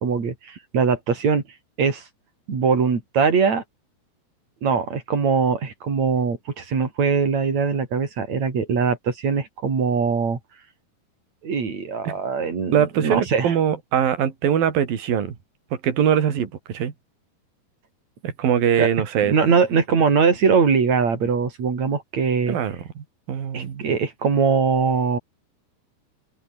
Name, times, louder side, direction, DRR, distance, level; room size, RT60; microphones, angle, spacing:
voice 1, 0.0-1.4 1.8-2.0 2.5-3.6 4.6-10.4 11.4-13.6 18.8-18.9 19.3-22.6 23.5-25.2, right 5 dB, 45° right, 5.2 m, -21 dB
voice 2, 12.7-15.4 15.8-16.9 18.2-19.3 22.5-23.8, right 9 dB, 60° right, 4.6 m, -22 dB
open air
omnidirectional pair, 4.7 m